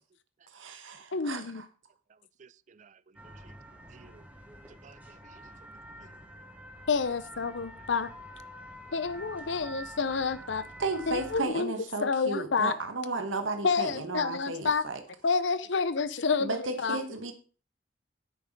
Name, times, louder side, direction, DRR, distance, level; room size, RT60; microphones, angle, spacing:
voice 1, 0.5-1.6 10.8-15.0 16.4-17.3, right 3 dB, 85° right, 1.3 m, -34 dB
voice 2, 1.1-1.6 6.9-8.1 8.9-10.6 11.1-11.7 12.0-12.7 13.6-14.8 15.2-17.0, left 5 dB, 70° left, 0.7 m, -29 dB
voice 3, 2.4-3.6 3.9-4.3 4.7-6.1, right 5 dB, 40° right, 0.4 m, -58 dB
sound 1, 3.1-11.5, right 1 dB, 10° right, 1.2 m, -47 dB
9.1 x 6.5 x 5.4 m
head